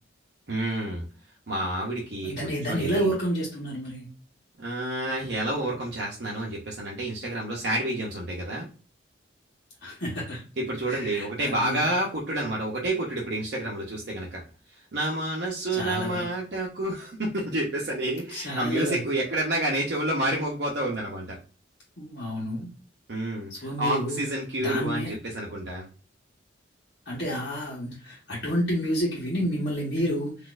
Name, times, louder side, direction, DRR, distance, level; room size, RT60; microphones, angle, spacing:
voice 1, 0.5-1.1 1.5-2.3 2.7-3.1 4.6-8.7 10.6-14.4 14.9-21.4 23.1-25.9, right 1 dB, 55° right, -3 dB, 0.8 m, -29 dB
voice 2, 2.2-4.1 9.8-10.4 10.9-11.9 15.7-16.2 18.3-19.0 22.0-22.7 23.5-24.2 24.6-25.2 27.1-30.5, equal, 55° left, -6 dB, 1.1 m, -29 dB
4.1 x 2.6 x 2.4 m, 0.35 s
head